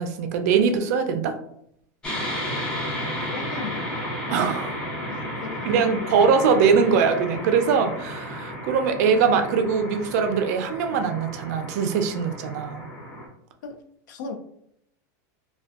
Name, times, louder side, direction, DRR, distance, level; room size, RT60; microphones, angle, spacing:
voice 1, 0.0-1.4 4.3-4.8 5.6-12.9, right 6 dB, 55° right, 0.3 m, -22 dB
sound 1, 2.0-13.3, equal, 10° left, 0.5 m, -33 dB
voice 2, 3.2-3.9 5.1-6.8 13.6-13.8 14.1-14.3, left 6 dB, 90° left, 0.4 m, -37 dB
2.5 x 2.2 x 2.3 m
supercardioid pair, 165°, 10 cm